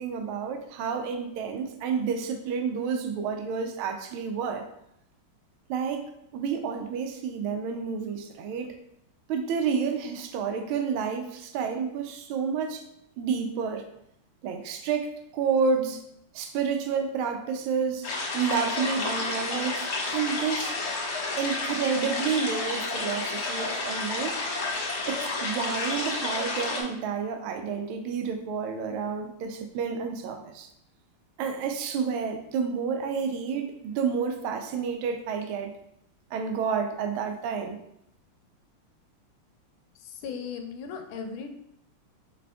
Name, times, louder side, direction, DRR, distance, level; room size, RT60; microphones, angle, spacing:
voice 1, 0.0-4.6 5.7-8.7 9.3-12.8 13.2-13.8 14.4-15.1 15.3-16.0 16.3-18.1 18.3-20.7 21.4-24.4 25.1-30.7 31.4-35.7 36.3-37.8, right 6 dB, 80° right, 5 dB, 1.4 m, -30 dB
sound 1, 18.0-26.8, left 3 dB, 50° left, 1.2 m, -30 dB
voice 2, 40.0-41.6, left 6 dB, 75° left, 5 dB, 1.4 m, -37 dB
5.0 x 4.2 x 2.3 m, 0.76 s
omnidirectional pair, 2.4 m